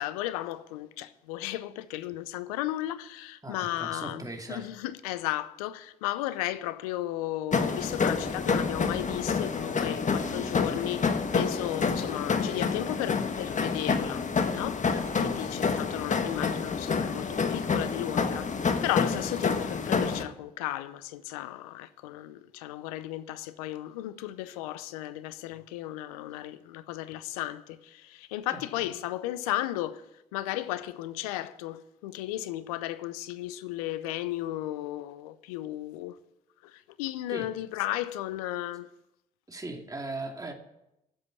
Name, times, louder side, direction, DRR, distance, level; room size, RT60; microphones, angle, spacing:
voice 1, 0.0-4.2 4.5-14.9 15.2-36.2 36.6-38.9, left 14 dB, 90° left, 0.6 m, -35 dB
voice 2, 3.4-4.7 14.9-15.3 19.4-19.5 28.5-28.9 37.3-37.5 39.5-40.5, right 2 dB, 20° right, 2.5 m, -39 dB
sound 1, 7.5-20.2, left 5 dB, 45° left, 1.4 m, -28 dB
11.5 x 7.9 x 9.4 m
hypercardioid pair, 45°, 18 cm